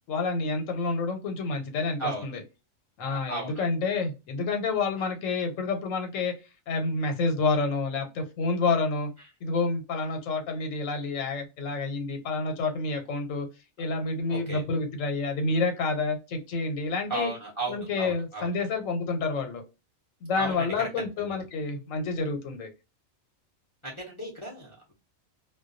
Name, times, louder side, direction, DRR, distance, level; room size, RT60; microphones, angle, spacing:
voice 1, 0.1-2.4 3.0-6.3 6.7-9.1 9.4-13.5 13.8-17.3 17.7-19.6 20.2-22.7, left 3 dB, 75° left, 5 dB, 1.0 m, -29 dB
voice 2, 3.0-3.5 5.0-5.1 14.3-14.6 17.1-18.5 20.3-20.9 23.8-24.9, right 2 dB, 30° left, -3 dB, 0.6 m, -35 dB
2.2 x 2.2 x 2.4 m, 0.28 s
omnidirectional pair, 1.4 m